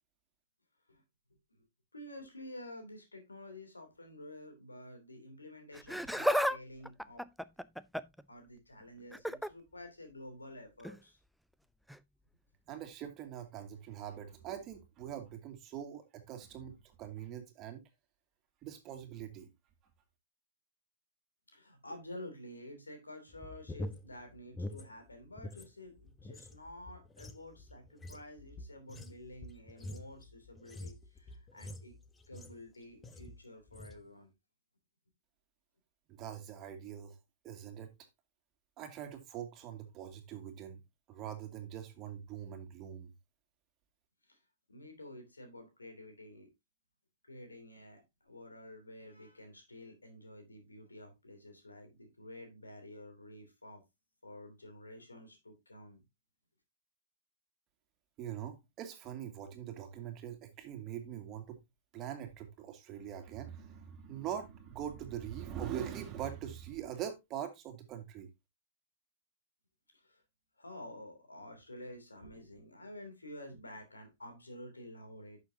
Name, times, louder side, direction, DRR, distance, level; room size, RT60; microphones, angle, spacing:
voice 1, 1.9-7.3 8.3-11.2 21.5-31.9 32.3-34.3 44.2-44.4 44.7-46.5 47.2-53.8 54.2-56.0 69.9-70.2 70.6-75.4, left 1 dB, 85° left, 3.0 m, -50 dB
Laughter, 5.7-6.6 6.9-8.2 9.1-9.5 10.8-11.0 11.9-12.0, equal, ahead, 0.4 m, -33 dB
voice 2, 12.7-17.8 18.6-19.5 36.2-37.2 37.4-37.9 38.8-40.8 41.1-43.1 58.2-61.6 61.9-68.3, right 10 dB, 30° right, 2.2 m, -43 dB
sound 1, 23.3-25.7 26.0-32.7 33.0-33.4 33.7-34.0, left 1 dB, 15° left, 1.1 m, -46 dB
11.0 x 6.5 x 2.8 m
figure-of-eight pair, 105°, 0 cm